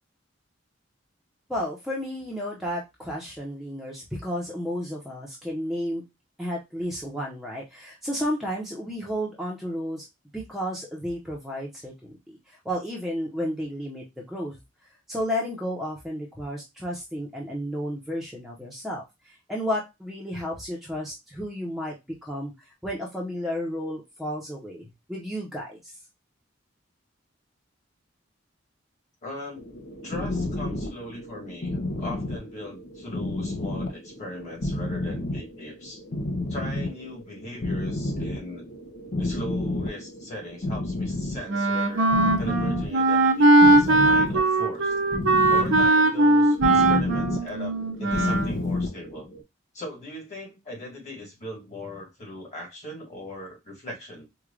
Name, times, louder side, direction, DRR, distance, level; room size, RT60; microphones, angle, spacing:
voice 1, 1.5-6.0 6.4-10.0 10.3-14.6 15.1-21.9 22.2-22.5 22.8-25.9, equal, ahead, 0.8 m, -32 dB
voice 2, 29.2-29.6 30.0-36.0 36.5-38.6 39.2-42.1 42.4-44.9 45.5-49.3 49.7-54.3, left 1 dB, 35° left, 1.9 m, -39 dB
sound 1, 29.6-49.4, left 2 dB, 55° left, 0.7 m, -31 dB
Wind instrument woodwind instrument, 41.5-48.6, right 2 dB, 70° right, 0.7 m, -20 dB
4.6 x 2.4 x 2.4 m
head